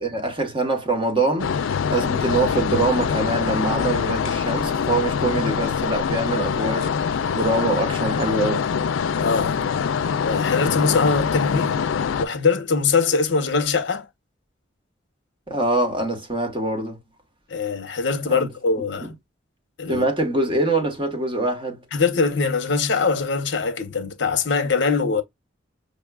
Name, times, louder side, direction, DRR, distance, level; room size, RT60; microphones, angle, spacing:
voice 1, 0.0-8.7 15.5-17.0 18.2-18.5 19.9-21.8, right 2 dB, 25° right, 1.2 m, -24 dB
sound 1, 1.4-12.3, left 6 dB, 85° left, 0.4 m, -24 dB
voice 2, 9.2-9.6 10.2-11.8 12.2-14.1 17.5-19.1 19.8-20.1 21.9-25.2, left 4 dB, 60° left, 0.8 m, -22 dB
5.3 x 2.3 x 2.2 m
head